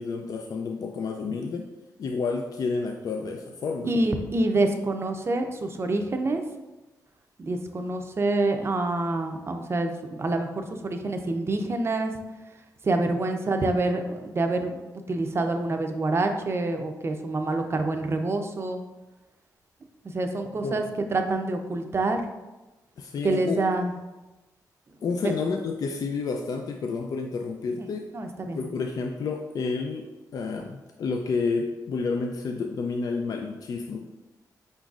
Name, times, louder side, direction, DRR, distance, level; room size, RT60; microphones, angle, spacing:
voice 1, 0.0-1.7 2.0-3.9 20.6-20.9 23.0-23.6 25.0-28.1 28.5-34.1, left 4 dB, 60° left, 3 dB, 0.4 m, -30 dB
voice 2, 3.8-6.4 7.4-12.1 12.8-18.8 20.0-20.8 21.1-22.2 23.2-23.9 27.8-28.6, right 2 dB, 35° right, 5 dB, 0.5 m, -27 dB
5.1 x 3.9 x 2.4 m, 1.1 s
cardioid pair, 90°, 7 cm